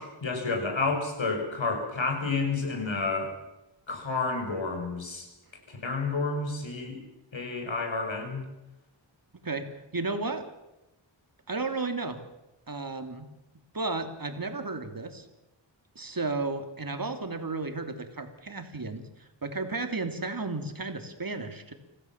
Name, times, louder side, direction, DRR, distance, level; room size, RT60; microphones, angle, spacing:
voice 1, 0.0-3.3 3.9-5.3 5.7-7.0 7.3-8.4, left 3 dB, 75° left, 4 dB, 5.9 m, -30 dB
voice 2, 9.4-10.5 11.5-12.2 12.7-13.3 13.7-15.3 15.9-21.7, right 3 dB, 45° right, 7 dB, 3.0 m, -33 dB
26.0 x 17.5 x 7.4 m, 0.97 s
wide cardioid pair, 75°, 46 cm